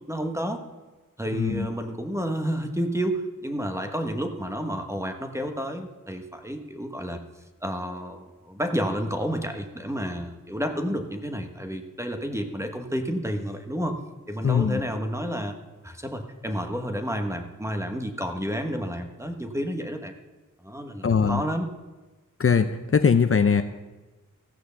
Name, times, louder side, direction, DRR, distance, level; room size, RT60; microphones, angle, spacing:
voice 1, 0.1-0.6 1.2-7.2 7.6-14.0 14.3-15.5 15.8-20.1 20.6-21.7, equal, 10° right, 5 dB, 1.3 m, -30 dB
voice 2, 1.3-1.7 14.4-14.8 21.0-21.4 22.4-23.6, left 6 dB, 45° left, 8 dB, 0.6 m, -21 dB
15.0 x 6.3 x 6.9 m, 1.2 s
wide cardioid pair, 70°, 32 cm